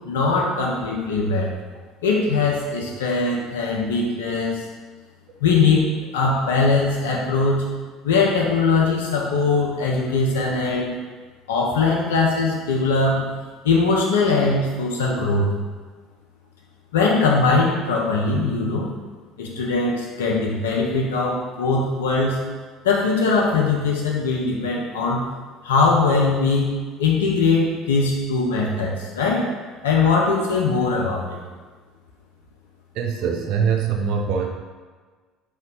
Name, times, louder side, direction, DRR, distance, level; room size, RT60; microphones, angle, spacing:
voice 1, 0.0-1.5 2.0-4.6 5.4-7.7 8.0-10.9 11.5-13.3 13.6-15.5 16.9-18.9 19.4-22.4 22.8-25.2 25.6-29.5 29.8-31.4, left 4 dB, 75° left, -2 dB, 0.5 m, -21 dB
voice 2, 33.0-34.5, right 6 dB, 60° right, 2 dB, 0.4 m, -23 dB
2.8 x 2.2 x 3.7 m, 1.4 s
figure-of-eight pair, 60°, 0 cm